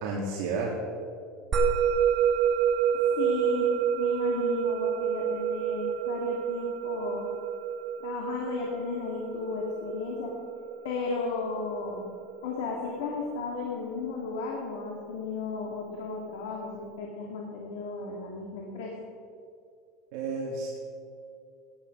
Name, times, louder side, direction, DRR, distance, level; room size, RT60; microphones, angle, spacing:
voice 1, 0.0-0.8 20.1-20.7, right 3 dB, 60° right, -3 dB, 2.0 m, -31 dB
Musical instrument, 1.5-12.1, right 8 dB, 20° right, 1.5 m, -28 dB
voice 2, 2.9-7.3 8.0-10.3 10.8-12.1 12.4-18.9, left 4 dB, 90° left, -1 dB, 2.3 m, -34 dB
17.0 x 9.2 x 5.3 m, 2.4 s
supercardioid pair, 170°, 0 cm